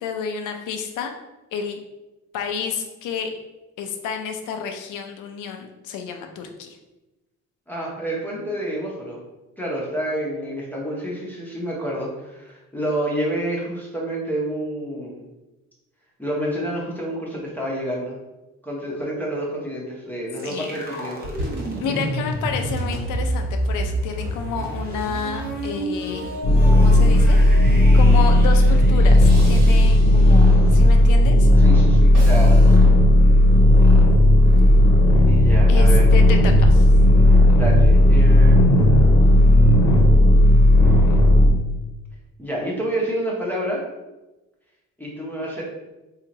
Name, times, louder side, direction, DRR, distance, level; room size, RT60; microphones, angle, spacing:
voice 1, 0.0-1.1 1.5-1.8 2.3-3.3 3.8-6.8 20.4-20.7 21.8-26.3 26.7-31.5 35.7-36.9, left 6 dB, 80° left, 4 dB, 0.6 m, -30 dB
voice 2, 7.7-9.2 9.6-15.2 16.2-18.2 18.6-21.3 21.9-22.1 31.6-32.6 35.3-36.1 37.5-38.9 42.4-43.8 45.0-45.6, right 1 dB, 5° left, -5 dB, 0.9 m, -28 dB
sound 1, 20.4-30.2, right 1 dB, 30° right, 0.9 m, -30 dB
sound 2, 20.8-20.9 21.2-27.8 29.2-30.9 32.1-32.8, equal, 75° right, 1.3 m, -36 dB
sound 3, 26.4-41.5, left 1 dB, 60° left, 0.9 m, -13 dB
2.8 x 2.4 x 4.0 m, 1.0 s
cardioid pair, 90°, 30 cm